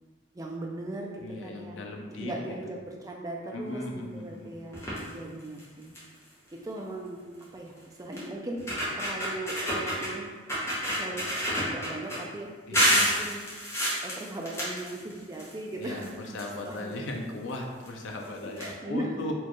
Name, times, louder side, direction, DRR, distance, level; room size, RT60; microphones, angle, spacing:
voice 1, 0.3-1.8 2.2-5.9 6.5-7.3 7.5-8.7 9.0-10.3 11.0-11.3 11.6-13.5 14.0-17.1 18.6-19.3, right 1 dB, 20° right, -1 dB, 0.4 m, -38 dB
voice 2, 1.2-2.3 3.5-4.6 12.7-13.2 15.8-19.3, left 1 dB, 75° left, 1 dB, 0.5 m, -37 dB
sound 1, 4.7-5.1 5.6-5.7 5.9-6.2 7.4-7.5 8.2-8.3 8.6-10.1 10.5-12.2 12.7-15.5 15.8-16.9 17.8-17.9 18.2-18.3 18.6-18.7, equal, 15° left, 0.8 m, -28 dB
4.3 x 2.3 x 3.0 m, 1.4 s
head